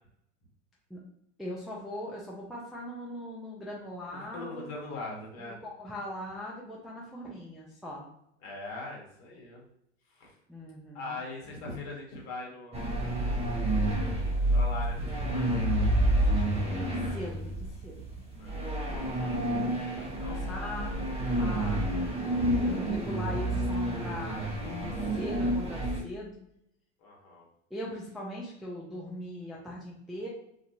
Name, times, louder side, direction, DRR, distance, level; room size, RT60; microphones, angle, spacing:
voice 1, 1.4-4.8 5.4-8.1 10.5-11.2 16.3-18.0 20.0-20.9 21.4-21.9 22.6-26.4 27.7-30.3, left 1 dB, ahead, -4 dB, 0.3 m, -40 dB
voice 2, 4.1-5.6 8.4-9.6 10.1-10.4 10.9-13.1 14.5-15.6 18.4-18.7 20.2-20.5 27.0-27.5, left 3 dB, 45° left, -1 dB, 1.1 m, -41 dB
sound 1, 12.7-26.0, right 1 dB, 15° right, 0.7 m, -29 dB
2.4 x 2.3 x 2.8 m, 0.75 s
hypercardioid pair, 90°, 36 cm